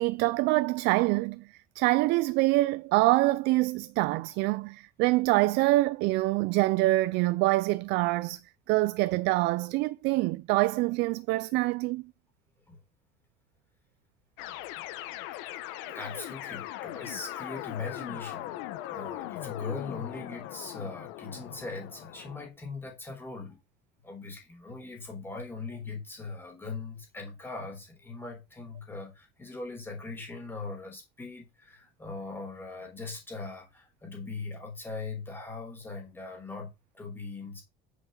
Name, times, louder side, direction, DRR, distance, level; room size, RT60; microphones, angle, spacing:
voice 1, 0.0-1.5 1.8-8.4 8.7-12.0, right 20 dB, 55° right, 0.4 m, -25 dB
sound 1, 14.4-22.5, left 14 dB, 70° left, 1.1 m, -40 dB
voice 2, 15.9-23.6 24.0-37.6, left 3 dB, 10° left, 3.8 m, -40 dB
9.3 x 8.2 x 3.9 m
cardioid pair, 175°, 20 cm